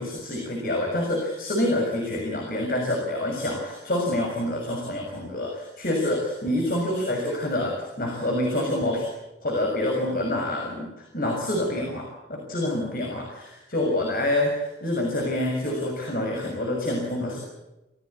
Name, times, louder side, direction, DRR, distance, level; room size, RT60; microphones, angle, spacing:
voice 1, 0.0-9.1 9.4-17.4, left 1 dB, 55° left, 1 dB, 6.3 m, -27 dB
27.5 x 18.0 x 8.7 m, 1.0 s
head